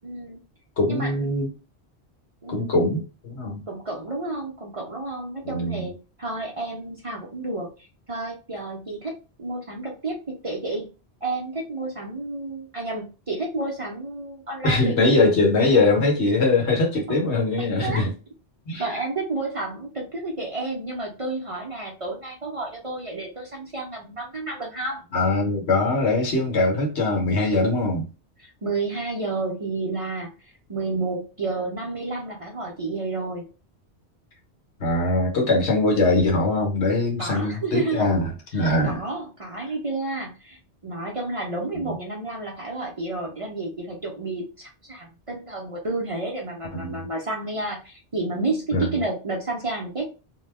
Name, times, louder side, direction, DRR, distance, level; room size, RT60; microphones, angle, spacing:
voice 1, 0.0-0.4 0.9-1.2 2.4-2.8 3.7-7.7 8.1-10.8 11.2-15.2 15.7-15.8 17.1-17.2 17.8-18.1 18.8-25.0 28.4-30.3 30.7-33.5 37.2-38.1 38.5-50.1, right 2 dB, 35° right, 0.6 m, -31 dB
voice 2, 0.8-1.5 2.5-3.6 5.4-5.9 14.6-18.1 18.7-18.9 25.1-28.1 34.8-39.0 41.9-42.0 46.7-47.0 48.7-48.9, left 2 dB, 75° left, 1.3 m, -22 dB
2.7 x 2.2 x 3.3 m
omnidirectional pair, 1.1 m